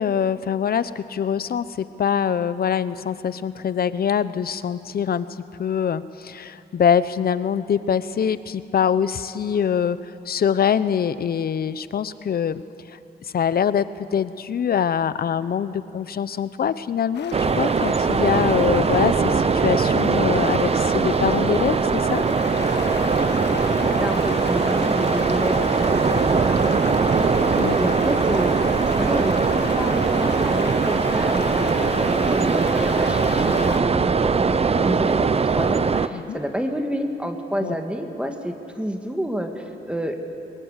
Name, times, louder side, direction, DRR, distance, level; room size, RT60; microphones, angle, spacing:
voice 1, 0.0-5.3 5.6-12.6 12.9-13.9 14.1-22.2 27.6-27.8 36.1-36.4 37.6-37.7, left 8 dB, 60° left, 14 dB, 0.8 m, -24 dB
sound 1, 17.1-33.8, left 7 dB, 85° left, 1.3 m, -34 dB
sound 2, 17.3-36.1, right 5 dB, 35° right, 0.7 m, -21 dB
sound 3, 22.2-26.3, left 3 dB, 80° right, 7.7 m, -47 dB
voice 2, 23.5-26.6 27.0-28.5 28.9-40.2, equal, 5° right, 4 dB, 2.0 m, -29 dB
22.5 x 21.0 x 8.3 m, 2.8 s
cardioid pair, 105°, 17 cm